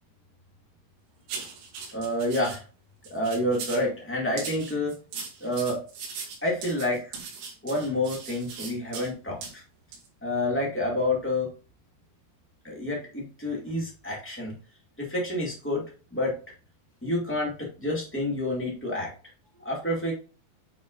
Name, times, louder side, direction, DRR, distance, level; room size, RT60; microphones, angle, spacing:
sound 1, 1.3-2.6 3.0-3.9 4.4-9.1 9.4-9.5 9.9-10.1, right 5 dB, 90° right, 4.2 m, -39 dB
voice 1, 1.9-2.6 3.1-5.0 5.4-5.8 6.4-7.2 7.6-9.6 10.2-11.5 12.6-14.5 15.0-15.8 16.1-16.3 17.0-19.1 19.6-20.1, left 1 dB, 15° left, -3 dB, 0.5 m, -28 dB
9.1 x 4.7 x 2.6 m, 0.35 s
omnidirectional pair, 4.9 m